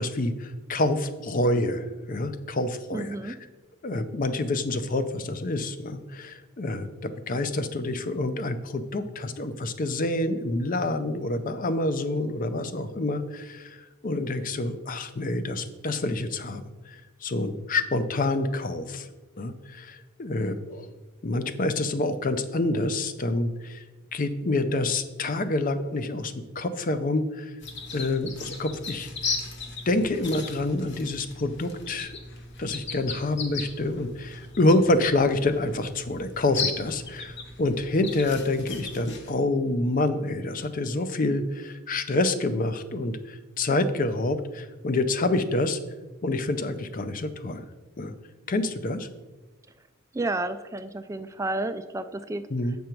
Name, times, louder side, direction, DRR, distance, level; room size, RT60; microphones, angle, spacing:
voice 1, 0.0-3.3 3.8-19.1 19.4-20.9 21.2-23.8 24.1-27.5 27.9-29.4 29.9-32.1 32.6-45.8 46.2-47.6 48.0-48.1 48.5-49.1 52.5-52.8, left 2 dB, 40° left, 11 dB, 0.5 m, -27 dB
voice 2, 2.9-3.3 50.1-52.4, right 2 dB, 15° right, 10 dB, 0.3 m, -31 dB
sound 1, 27.6-39.3, left 4 dB, 55° left, 0.9 m, -37 dB
7.6 x 5.3 x 4.5 m, 1.2 s
head